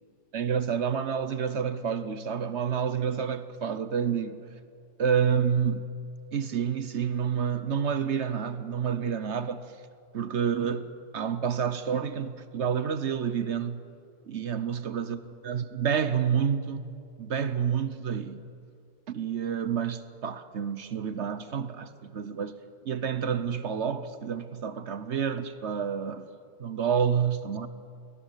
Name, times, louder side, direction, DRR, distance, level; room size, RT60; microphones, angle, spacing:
voice 1, 0.3-4.4 5.0-5.9 6.3-9.8 10.1-13.8 14.3-16.9 17.2-18.4 19.1-22.6 22.8-26.3 26.6-27.7, right 7 dB, 55° right, 1.1 m, -29 dB
22.5 x 19.0 x 8.2 m
omnidirectional pair, 1.5 m